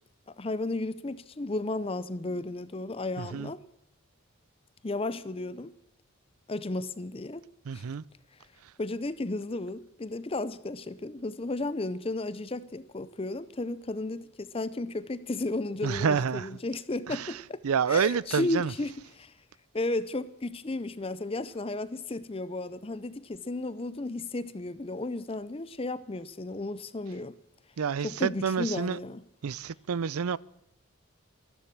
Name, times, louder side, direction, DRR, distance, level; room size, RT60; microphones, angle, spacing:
voice 1, 0.3-3.6 4.8-5.7 6.5-7.4 7.7-7.8 8.8-17.6 17.9-19.3 19.7-27.4 28.0-29.2, left 2 dB, 25° left, 0.5 m, -34 dB
voice 2, 3.2-3.5 7.7-8.0 15.8-16.5 17.1-17.3 17.6-18.7 27.8-29.0 29.4-30.4, right 6 dB, 80° right, 0.5 m, -28 dB
13.5 x 13.5 x 6.0 m
head